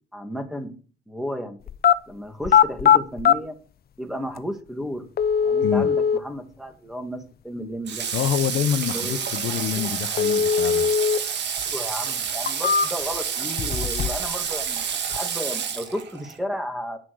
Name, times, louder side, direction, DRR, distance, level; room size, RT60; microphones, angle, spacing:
voice 1, 0.1-0.8 1.1-1.6 2.1-3.6 4.0-5.0 5.4-8.1 8.9-9.2 9.8-9.9 11.7-17.0, equal, ahead, 2.1 m, -33 dB
sound 1, 1.7-2.0 2.4-3.4 4.4-4.5 5.2-6.2 10.2-11.2 11.6-11.7 12.3-13.2 13.6-14.3 14.6-15.2, left 7 dB, 50° left, 0.6 m, -20 dB
Water / Water tap faucet, 7.9-16.4, right 7 dB, 60° right, 1.6 m, -29 dB
voice 2, 8.1-10.9, left 9 dB, 85° left, 0.9 m, -26 dB
10.0 x 6.0 x 6.3 m
cardioid pair, 90°, 20 cm